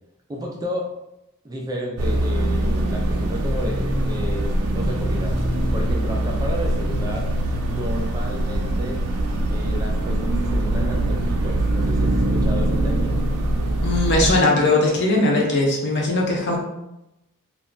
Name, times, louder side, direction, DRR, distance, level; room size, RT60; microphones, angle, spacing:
voice 1, 0.3-0.9 1.4-5.4 5.7-7.3 7.6-9.0 9.5-13.2, equal, 15° right, 0 dB, 0.3 m, -32 dB
sound 1, 2.0-14.3, right 1 dB, 80° right, 0.5 m, -22 dB
voice 2, 13.8-16.6, left 2 dB, 50° left, -1 dB, 0.7 m, -19 dB
2.3 x 2.1 x 3.7 m, 0.91 s
head